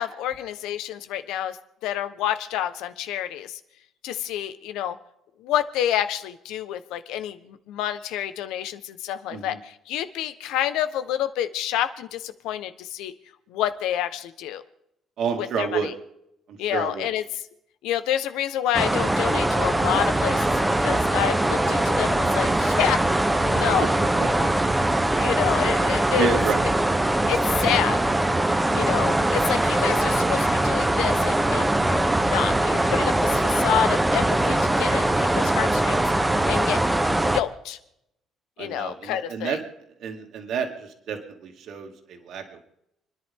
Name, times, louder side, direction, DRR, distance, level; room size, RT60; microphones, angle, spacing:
voice 1, 0.0-1.6 1.8-3.6 4.0-5.0 5.4-13.1 13.5-14.6 15.4-15.9 16.6-17.2 17.8-23.0 23.4-23.9 25.2-26.4 27.3-28.0 28.7-36.0 36.5-37.8 38.6-39.6, left 11 dB, 85° left, 11 dB, 1.2 m, -28 dB
voice 2, 15.2-15.9 16.5-17.1 23.8-24.5 26.2-26.6 38.6-39.6 40.0-42.7, right 6 dB, 60° right, 3 dB, 2.6 m, -30 dB
sound 1, 18.7-37.4, right 1 dB, 10° right, 1.0 m, -22 dB
29.5 x 10.5 x 3.8 m, 0.79 s
cardioid pair, 145°, 0 cm